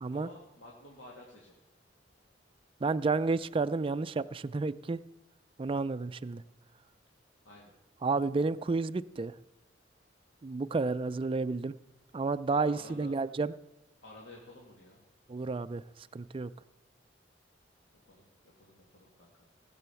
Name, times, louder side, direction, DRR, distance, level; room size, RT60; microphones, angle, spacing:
voice 1, 0.1-1.6 7.4-7.7 12.5-13.2 14.0-15.0 18.1-19.5, left 1 dB, 85° left, -3 dB, 2.2 m, -52 dB
voice 2, 2.8-5.0 5.6-6.4 8.0-9.3 10.4-11.7 12.1-13.5 15.3-15.8 16.1-16.5, right 3 dB, 30° right, 12 dB, 0.4 m, -31 dB
16.5 x 6.9 x 7.0 m, 1.1 s
head